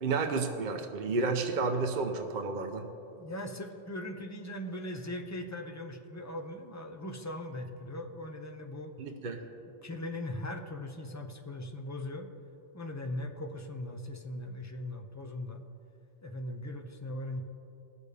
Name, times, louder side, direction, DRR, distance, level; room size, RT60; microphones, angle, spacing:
voice 1, 0.0-2.9 9.0-9.5, right 4 dB, 50° right, 5 dB, 0.7 m, -31 dB
voice 2, 3.1-8.9 9.7-12.3 12.7-15.6 16.2-17.4, left 1 dB, 20° left, 2 dB, 0.5 m, -39 dB
18.0 x 6.8 x 3.3 m, 2.8 s
omnidirectional pair, 1.2 m